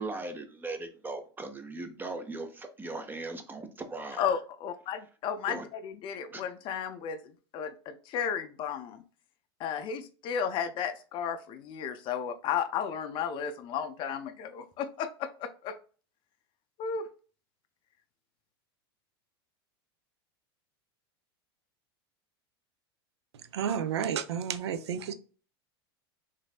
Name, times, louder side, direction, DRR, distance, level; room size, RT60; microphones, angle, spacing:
voice 1, 0.0-4.2 5.5-5.6 6.3-6.4, right 3 dB, 15° right, 0.5 m, -38 dB
voice 2, 4.2-7.2 7.5-9.0 9.6-15.8 16.8-17.1, left 7 dB, 40° left, 0.4 m, -33 dB
voice 3, 23.5-25.1, right 8 dB, 85° right, 0.4 m, -31 dB
3.1 x 2.6 x 2.3 m
hypercardioid pair, 105°, 14 cm